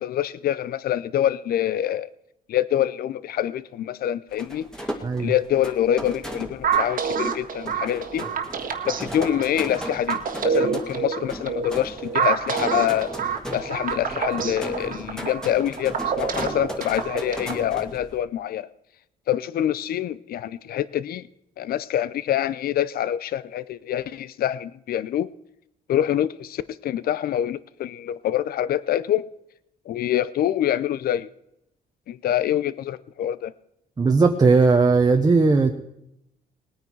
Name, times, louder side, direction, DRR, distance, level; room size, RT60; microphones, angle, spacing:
voice 1, 0.0-2.1 2.5-4.7 5.2-8.3 8.9-13.1 13.5-18.7 19.3-21.3 21.6-25.3 25.9-29.3 29.9-31.3 32.1-33.5, left 11 dB, 65° left, 17 dB, 0.6 m, -25 dB
sound 1, 4.3-18.2, equal, 5° left, 2.3 m, -37 dB
sound 2, 6.6-17.7, right 6 dB, 60° right, 1.6 m, -27 dB
voice 2, 34.0-35.7, right 4 dB, 25° right, 3 dB, 1.1 m, -17 dB
20.0 x 9.5 x 4.7 m, 0.80 s
cardioid pair, 110°, 16 cm